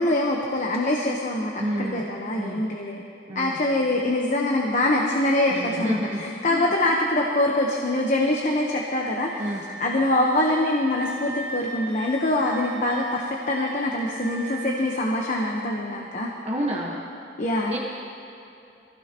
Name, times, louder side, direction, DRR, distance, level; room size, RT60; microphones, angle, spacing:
voice 1, 0.0-3.0 3.3-9.3 9.8-16.3 17.4-17.7, left 1 dB, 45° left, -1 dB, 1.1 m, -24 dB
voice 2, 1.6-2.0 2.3-2.6 3.3-3.6 5.5-6.2 6.5-6.7 9.4-9.6 16.4-17.0 17.7-17.8, equal, 35° right, -3 dB, 1.4 m, -29 dB
Wind instrument woodwind instrument, 9.2-15.6, right 2 dB, 65° right, 1.9 m, -39 dB
22.5 x 16.5 x 3.0 m, 2.8 s
head